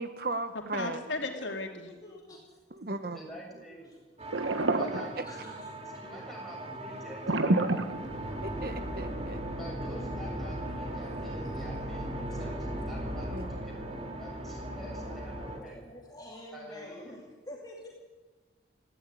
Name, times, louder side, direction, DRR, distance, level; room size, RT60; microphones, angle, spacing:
voice 1, 0.0-1.0 2.7-3.2 4.7-5.2 8.4-9.4 13.3-13.6, right 2 dB, 50° right, 1.1 m, -37 dB
voice 2, 0.7-1.9, left 3 dB, 80° left, 2.9 m, -35 dB
voice 3, 1.9-2.6 3.6-4.0 5.2-5.7 10.6-11.0 15.5-17.9, left 1 dB, 20° left, 2.5 m, -48 dB
voice 4, 3.0-3.9 4.7-7.9 9.5-15.8 16.5-17.2, equal, ahead, 6.6 m, -48 dB
sound 1, 4.2-15.6, right 1 dB, 30° right, 2.5 m, -38 dB
sound 2, 4.3-5.6 7.3-8.6, right 2 dB, 85° right, 1.5 m, -28 dB
18.0 x 15.0 x 9.9 m
head